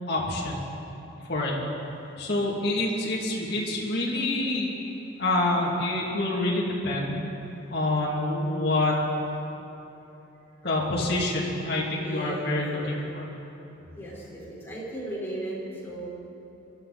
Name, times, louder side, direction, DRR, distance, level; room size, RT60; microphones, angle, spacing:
voice 1, 0.1-0.6 1.3-1.6 2.2-4.7 5.2-7.3 7.7-9.0 10.6-13.3, left 2 dB, 60° left, -5 dB, 2.7 m, -27 dB
voice 2, 12.0-13.0 13.9-16.1, right 1 dB, 15° left, -7 dB, 4.5 m, -37 dB
24.5 x 13.0 x 4.2 m, 2.9 s
head